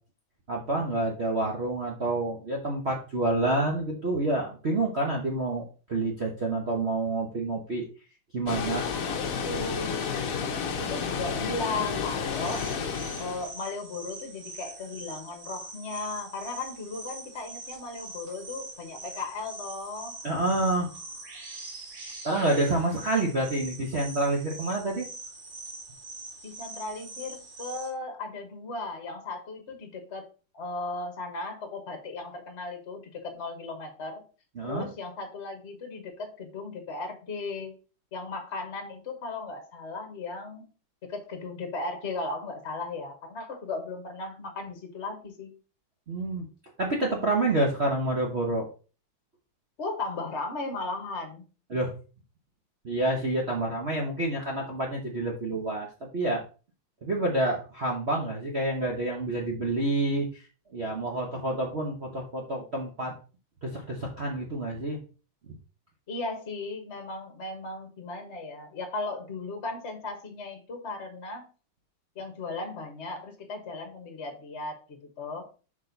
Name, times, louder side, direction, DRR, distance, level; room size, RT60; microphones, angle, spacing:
voice 1, 0.5-7.8 8.3-8.9 20.2-20.9 22.2-25.1 34.6-34.9 46.1-46.5 46.8-48.7 51.7-51.9 52.8-56.4 57.0-60.4 60.7-63.1 63.6-65.0, right 2 dB, 45° right, -1 dB, 0.9 m, -28 dB
Water, 8.5-13.5, left 6 dB, 55° left, 1.0 m, -31 dB
voice 2, 9.0-12.7 13.2-20.1 26.4-30.3 30.5-34.2 34.6-37.8 38.1-40.7 41.1-45.6 49.8-51.4 66.1-71.5 72.1-75.4, left 3 dB, 40° left, 5 dB, 1.2 m, -36 dB
sound 1, 12.3-27.9, right 2 dB, 70° right, 2.8 m, -43 dB
6.3 x 5.1 x 4.0 m, 0.36 s
omnidirectional pair, 2.3 m